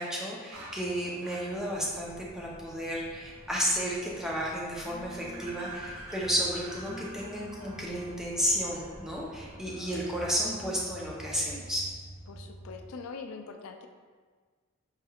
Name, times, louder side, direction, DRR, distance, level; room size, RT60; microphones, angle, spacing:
voice 1, 0.0-11.8, equal, ahead, -5 dB, 0.6 m, -32 dB
sound 1, 0.5-12.9, right 1 dB, 90° right, 0.7 m, -47 dB
Telephone, 1.5-9.6, equal, 35° left, 1.0 m, -50 dB
voice 2, 12.3-13.9, left 4 dB, 75° left, 5 dB, 0.4 m, -42 dB
5.5 x 3.5 x 2.3 m, 1.5 s
head